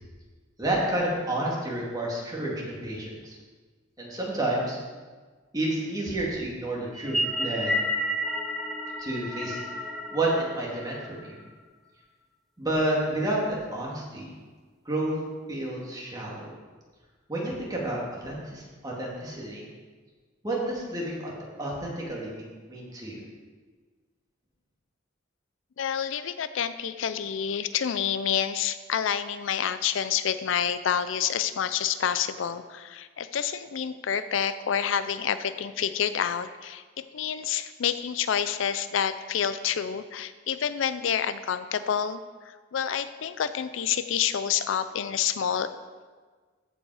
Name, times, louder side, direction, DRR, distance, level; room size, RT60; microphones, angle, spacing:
voice 1, 0.6-3.4 4.0-4.8 5.5-7.7 9.0-9.6 10.1-11.4 12.6-14.3 14.9-15.2 15.5-16.5 17.3-19.7 20.4-21.3 21.6-23.2, right 1 dB, 20° right, -4 dB, 2.2 m, -30 dB
sound 1, 6.9-11.5, equal, ahead, 0.6 m, -31 dB
voice 2, 25.8-45.7, left 8 dB, 70° left, 12 dB, 0.4 m, -28 dB
14.0 x 5.4 x 4.8 m, 1.4 s
head